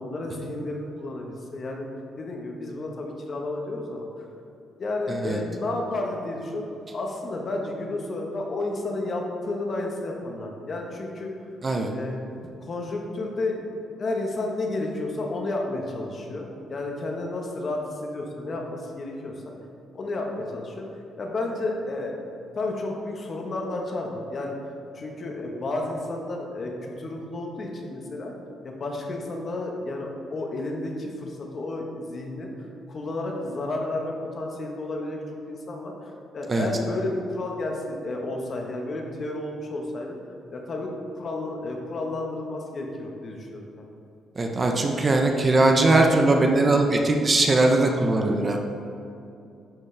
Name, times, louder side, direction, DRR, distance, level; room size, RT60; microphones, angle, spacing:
voice 1, 0.0-1.9 2.2-4.0 4.8-6.6 6.9-11.3 11.9-12.2 12.6-13.6 14.0-19.5 19.9-22.1 22.5-24.5 24.9-28.3 28.6-32.5 32.9-35.2 35.5-40.2 40.5-40.9 41.1-43.9, left 2 dB, 45° left, 1 dB, 1.1 m, -31 dB
voice 2, 5.1-5.4 11.6-11.9 36.5-36.7 44.4-48.6, right 2 dB, 30° right, 3 dB, 0.7 m, -20 dB
10.5 x 4.2 x 3.3 m, 2.7 s
cardioid pair, 90°, 0 cm